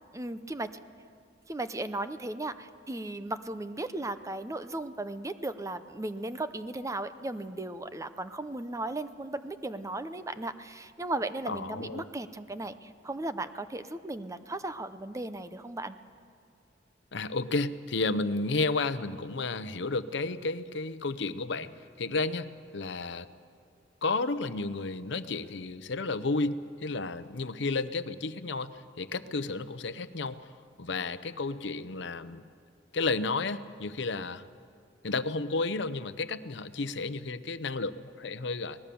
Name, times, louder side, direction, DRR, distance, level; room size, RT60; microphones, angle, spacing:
voice 1, 0.1-0.7 1.5-16.0, right 2 dB, 15° right, 11 dB, 0.7 m, -36 dB
voice 2, 11.5-12.0 17.1-21.7 22.0-23.3 24.0-30.5 30.8-32.5 32.9-34.4 35.0-37.9 38.2-38.8, left 3 dB, 70° left, 13 dB, 0.8 m, -32 dB
24.5 x 19.5 x 7.0 m, 2.3 s
head